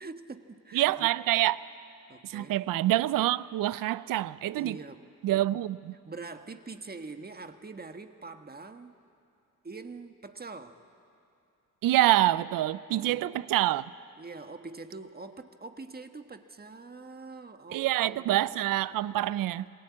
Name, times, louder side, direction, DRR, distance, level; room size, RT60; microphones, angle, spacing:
voice 1, 0.0-1.1 2.1-2.6 4.6-5.4 6.0-8.9 9.6-10.8 12.9-13.4 14.2-18.5, right 3 dB, 30° right, 1.5 m, -44 dB
voice 2, 0.7-1.6 2.2-4.8 5.2-5.9 11.8-13.8 17.7-19.7, right 15 dB, 80° right, 0.6 m, -26 dB
26.5 x 17.5 x 8.6 m
cardioid pair, 65°, 33 cm